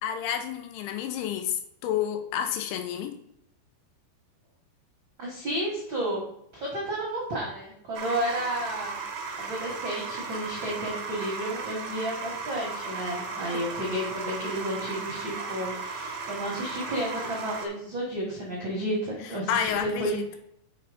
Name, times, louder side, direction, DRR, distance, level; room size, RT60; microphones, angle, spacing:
voice 1, 0.0-3.2 13.5-13.6 19.2-20.4, left 9 dB, 80° left, 6 dB, 3.1 m, -30 dB
voice 2, 5.2-6.2 6.5-9.0 9.4-20.4, right 1 dB, 75° right, -3 dB, 1.1 m, -32 dB
sound 1, 7.9-17.7, right 4 dB, 90° right, 1.5 m, -36 dB
6.9 x 4.4 x 5.0 m, 0.75 s
omnidirectional pair, 5.2 m